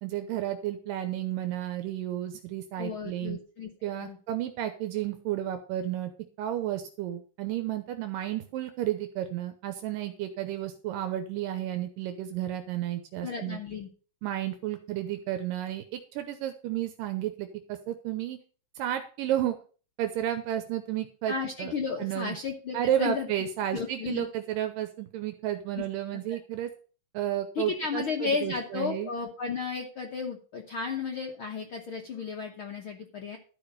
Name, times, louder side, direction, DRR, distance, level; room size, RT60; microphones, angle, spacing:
voice 1, 0.0-3.4 3.8-6.1 6.4-13.6 14.2-18.4 18.8-19.6 20.0-21.7 22.0-22.4 22.7-26.7 27.1-29.1, right 12 dB, 80° right, 8 dB, 2.5 m, -32 dB
voice 2, 2.8-3.7 4.0-4.2 13.2-13.9 21.3-23.3 23.7-24.2 25.8-25.9 26.1-26.4 27.5-33.4, left 5 dB, 70° left, 2 dB, 1.2 m, -33 dB
12.5 x 5.1 x 6.6 m, 0.39 s
omnidirectional pair, 4.0 m